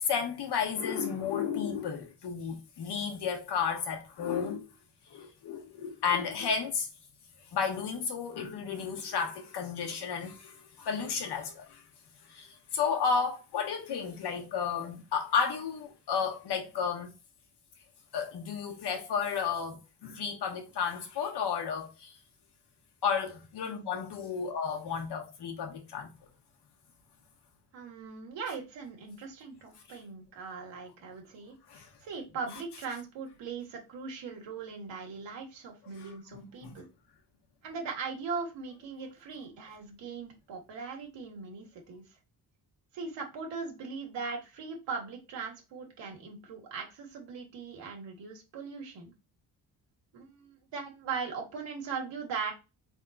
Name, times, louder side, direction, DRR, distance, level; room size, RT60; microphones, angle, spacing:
voice 1, 0.0-4.7 5.1-6.9 7.5-11.8 12.3-17.1 18.1-22.1 23.0-26.1 31.7-31.9 36.0-36.7, left 6 dB, 70° left, 1.3 m, -32 dB
voice 2, 27.7-36.9 37.6-42.0 42.9-49.1 50.1-52.5, right 5 dB, 85° right, 1.5 m, -40 dB
3.9 x 3.6 x 2.4 m
cardioid pair, 95°, 42 cm